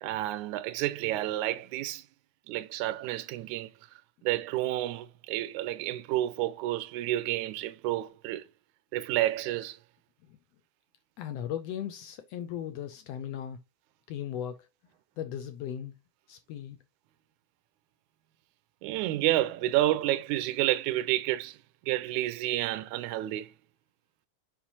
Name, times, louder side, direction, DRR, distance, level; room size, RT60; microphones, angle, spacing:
voice 1, 0.0-2.0 2.5-3.7 4.2-8.5 8.9-9.8 18.8-21.6 21.9-23.5, right 14 dB, 85° right, 2.0 m, -30 dB
voice 2, 11.2-13.6 14.1-14.7 15.2-15.9 16.3-16.8, left 10 dB, 75° left, 1.5 m, -37 dB
7.1 x 5.2 x 2.8 m
omnidirectional pair, 3.4 m